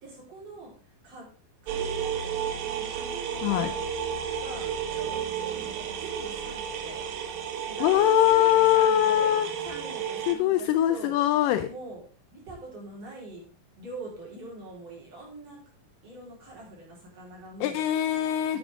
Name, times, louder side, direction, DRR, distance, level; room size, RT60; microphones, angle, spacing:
voice 1, 0.0-1.3 1.6-3.8 4.4-7.0 7.7-9.3 9.6-11.1 11.6-12.0 12.3-13.4 13.8-15.6 16.0-17.8 18.5-18.6, right 2 dB, 45° right, -3 dB, 5.0 m, -43 dB
sound 1, 1.7-10.3, right 7 dB, 75° right, 2.8 m, -32 dB
voice 2, 7.8-9.5 10.3-11.7 17.6-18.6, left 12 dB, 80° left, 10 dB, 2.1 m, -22 dB
10.0 x 9.1 x 3.6 m, 0.43 s
omnidirectional pair, 4.1 m